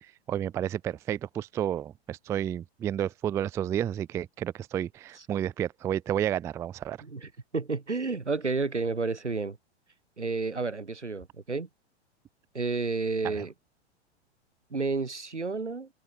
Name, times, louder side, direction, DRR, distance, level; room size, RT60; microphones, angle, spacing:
voice 1, 0.0-7.0 13.2-13.5, right 10 dB, 10° right, 0.3 m, -31 dB
voice 2, 7.0-9.6 10.2-11.7 12.5-13.5 14.7-15.9, right 4 dB, 85° right, 3.2 m, -31 dB
open air
figure-of-eight pair, 105°, 34 cm